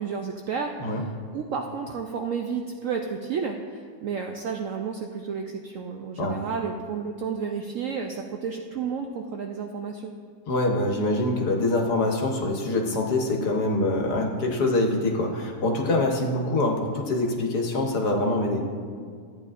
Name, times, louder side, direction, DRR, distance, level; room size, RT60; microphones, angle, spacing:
voice 1, 0.0-10.1, right 6 dB, 75° right, 3 dB, 0.7 m, -31 dB
voice 2, 10.5-18.6, left 2 dB, 70° left, 1 dB, 1.6 m, -24 dB
13.5 x 9.0 x 2.5 m, 2.1 s
omnidirectional pair, 1.9 m